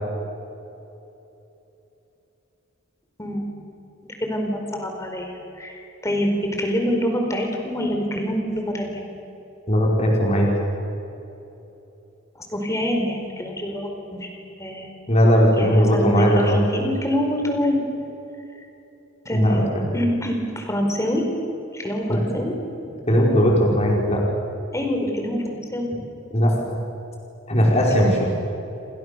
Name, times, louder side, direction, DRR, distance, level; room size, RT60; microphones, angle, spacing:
voice 1, 3.2-3.5 4.0-9.0 12.4-14.3 14.6-14.9 15.6-17.8 19.2-19.7 19.9-21.2 21.7-22.5 24.7-25.9 27.9-28.0, equal, 15° left, 3 dB, 4.8 m, -25 dB
voice 2, 9.7-10.5 15.1-16.6 19.3-19.9 22.1-22.2 23.1-24.2 26.3-26.8 27.5-28.2, equal, 35° left, -2 dB, 5.4 m, -18 dB
30.0 x 25.5 x 7.0 m, 3.0 s
head